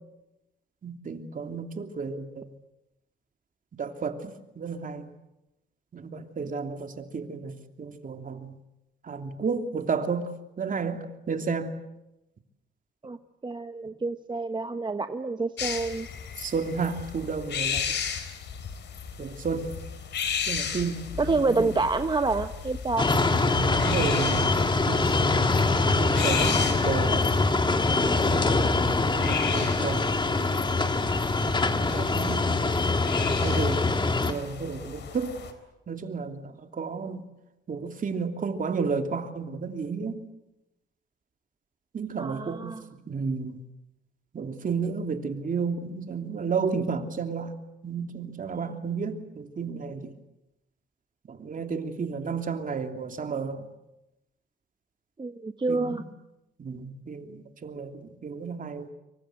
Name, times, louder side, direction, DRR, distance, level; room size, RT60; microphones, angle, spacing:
voice 1, 0.8-2.5 3.8-5.1 5.9-8.5 9.0-10.3 10.6-11.8 16.4-17.9 19.2-19.7 20.5-21.7 23.5-25.7 26.0-27.4 28.0-28.3 29.0-30.1 30.4-30.6 31.4-32.4 33.2-33.8 34.3-35.4 35.9-37.2 37.7-40.2 41.9-42.7 43.1-43.7 44.3-47.5 47.8-50.1 51.3-53.7 55.7-56.0 56.6-58.9, right 5 dB, 45° right, 6 dB, 3.0 m, -32 dB
voice 2, 13.4-16.1 21.2-23.1 42.2-42.8 55.2-56.0, right 3 dB, 25° right, 8 dB, 1.1 m, -28 dB
sound 1, 15.6-35.5, left 7 dB, 60° left, 3.8 m, -35 dB
sound 2, 23.0-34.3, left 3 dB, 25° left, 2.2 m, -24 dB
26.5 x 24.0 x 7.9 m, 0.91 s
cardioid pair, 90°, 20 cm